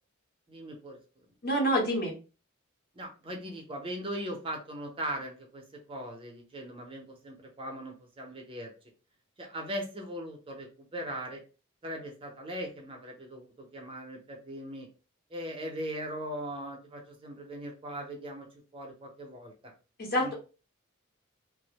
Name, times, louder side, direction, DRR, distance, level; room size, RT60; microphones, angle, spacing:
voice 1, 0.5-1.0 2.9-5.6 5.9-8.7 9.4-11.4 11.8-14.9 15.3-18.5 18.7-19.5 20.2-20.3, right 1 dB, 25° right, 2 dB, 0.5 m, -39 dB
voice 2, 1.4-2.1 20.0-20.3, equal, 50° left, -1 dB, 0.9 m, -27 dB
2.4 x 2.0 x 2.8 m, 0.33 s
head